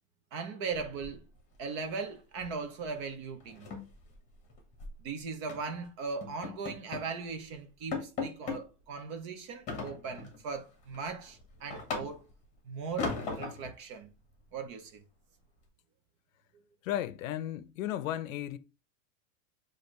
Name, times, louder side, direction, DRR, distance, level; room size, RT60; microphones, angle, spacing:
voice 1, 0.3-1.2 1.6-3.7 5.0-12.2 12.6-14.1 14.5-15.0, right 5 dB, 25° right, 0.3 m, -39 dB
sound 1, 0.7-1.6 1.8-2.1 2.4-2.6 2.9-3.0 3.4-5.0 5.5-5.7 6.2-7.1 7.5-7.6 7.9-8.6 9.7-10.4 10.8-12.4 13.0-13.7, left 4 dB, 20° left, 1.1 m, -38 dB
voice 2, 16.8-18.6, left 12 dB, 75° left, 0.6 m, -34 dB
6.8 x 2.5 x 3.0 m
supercardioid pair, 170°, 40 cm